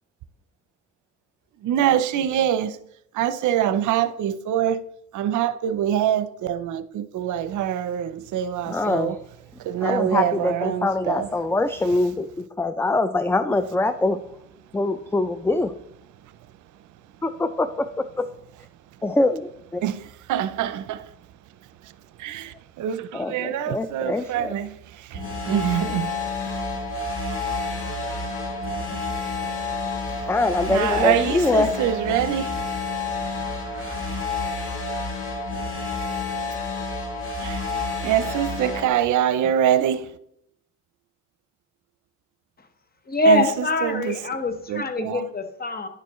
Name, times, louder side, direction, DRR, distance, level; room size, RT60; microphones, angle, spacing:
voice 1, 1.6-2.8 3.1-4.8 5.1-9.2 9.6-11.3 19.8-20.0 20.3-21.1 21.8-21.9 22.2-26.1 28.9-29.1 30.2-30.3 30.7-32.6 33.2-34.2 37.4-37.7 38.0-40.1 43.3-44.1 44.7-45.3, right 10 dB, 80° right, 0.6 m, -25 dB
voice 2, 8.6-9.2 9.8-14.2 14.7-15.7 17.2-18.3 19.0-19.8 23.1-24.5 30.3-31.7, left 2 dB, 10° left, 0.4 m, -24 dB
sound 1, 25.1-38.9, left 3 dB, 45° left, 3.5 m, -29 dB
voice 3, 43.1-45.9, left 3 dB, 30° left, 1.2 m, -24 dB
10.0 x 6.8 x 3.1 m
cardioid pair, 90°, 30 cm